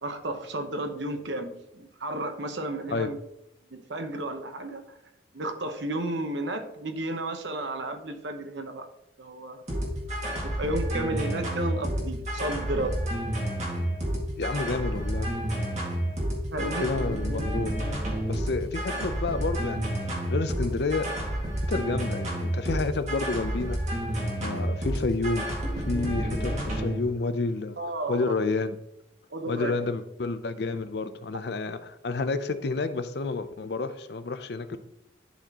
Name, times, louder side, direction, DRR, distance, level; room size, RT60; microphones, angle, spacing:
voice 1, 0.0-3.2 3.7-5.0 5.3-8.9 9.2-9.6 10.4-12.9 16.5-16.9 27.8-28.4 29.3-29.9, right 1 dB, 70° right, 7 dB, 0.9 m, -32 dB
sound 1, 9.7-27.0, equal, 35° right, 1.9 m, -30 dB
voice 2, 14.4-15.3 16.6-17.8 18.3-21.1 21.7-25.5 25.7-27.8 28.1-28.8 29.5-34.8, left 3 dB, 60° left, 11 dB, 0.5 m, -30 dB
11.5 x 4.2 x 2.9 m, 0.81 s
head